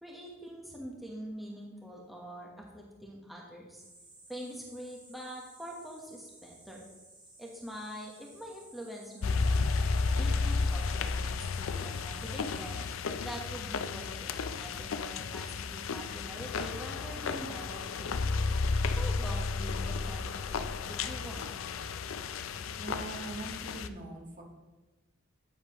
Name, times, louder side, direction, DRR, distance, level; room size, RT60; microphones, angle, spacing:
voice 1, 0.0-3.8 4.3-6.9 7.4-9.8 10.2-12.8 13.2-18.1 19.0-21.5, equal, ahead, -2 dB, 1.1 m, -45 dB
sound 1, 3.7-12.9, right 2 dB, 25° right, 2.5 m, -56 dB
sound 2, 9.2-23.9, left 4 dB, 80° left, 0.5 m, -32 dB
voice 2, 22.8-24.4, right 2 dB, 40° right, 0 dB, 1.7 m, -42 dB
10.5 x 8.9 x 3.0 m, 1.1 s
head